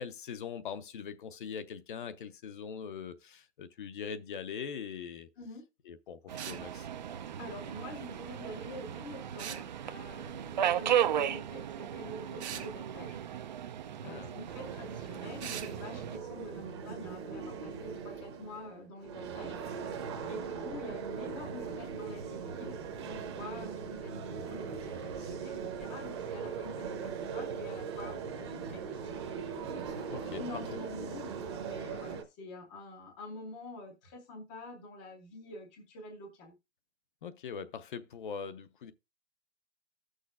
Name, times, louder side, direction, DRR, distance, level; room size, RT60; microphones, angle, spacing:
voice 1, 0.0-5.3 5.9-6.9 14.0-14.4 30.1-30.4 31.0-31.3 37.2-38.9, left 7 dB, 50° left, 0.7 m, -42 dB
voice 2, 5.4-5.7 7.4-13.2 14.0-19.6 20.3-29.2 30.1-36.5, left 1 dB, 10° left, 0.5 m, -46 dB
Subway metro underground, 6.3-16.2, right 10 dB, 45° right, 0.4 m, -35 dB
sound 1, 6.4-6.6 9.4-9.7 12.4-12.7 15.4-15.7, right 9 dB, 85° right, 1.2 m, -40 dB
sound 2, 14.5-32.2, right 6 dB, 25° right, 0.8 m, -40 dB
15.5 x 6.4 x 2.4 m
hypercardioid pair, 175°, 33 cm